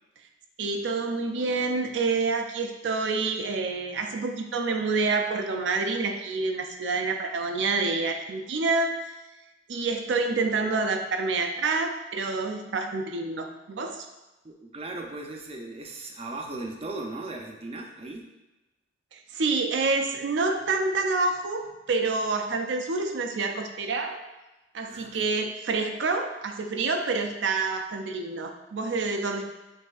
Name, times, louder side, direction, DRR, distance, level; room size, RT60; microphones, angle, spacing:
voice 1, 0.6-9.1 9.7-14.1 19.1-24.2 24.7-29.4, right 3 dB, 80° right, 5 dB, 0.5 m, -27 dB
voice 2, 14.4-18.3 24.9-25.3, right 2 dB, 35° right, 1 dB, 0.5 m, -37 dB
6.4 x 2.7 x 2.4 m, 1.0 s
head